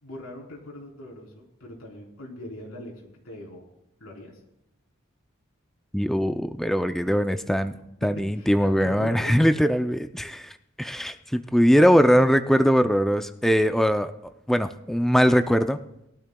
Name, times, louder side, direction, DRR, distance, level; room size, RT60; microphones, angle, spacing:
voice 1, 0.0-3.6 4.0-4.4 7.7-7.8 8.4-9.4, left 1 dB, 90° left, -1 dB, 3.4 m, -41 dB
voice 2, 5.9-7.7 8.0-14.1 14.5-15.8, equal, ahead, 9 dB, 0.4 m, -21 dB
21.0 x 12.0 x 2.2 m, 0.82 s
head